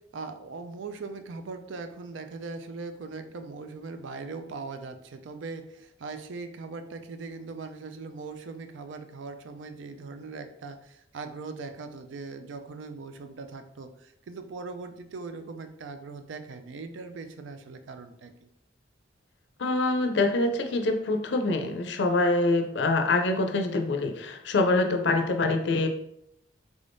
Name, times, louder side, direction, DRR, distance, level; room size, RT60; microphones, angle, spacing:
voice 1, 0.1-18.5, right 4 dB, 85° right, 8 dB, 0.4 m, -40 dB
voice 2, 19.6-25.9, left 2 dB, 70° left, 5 dB, 0.4 m, -25 dB
3.6 x 3.4 x 2.6 m, 0.78 s
head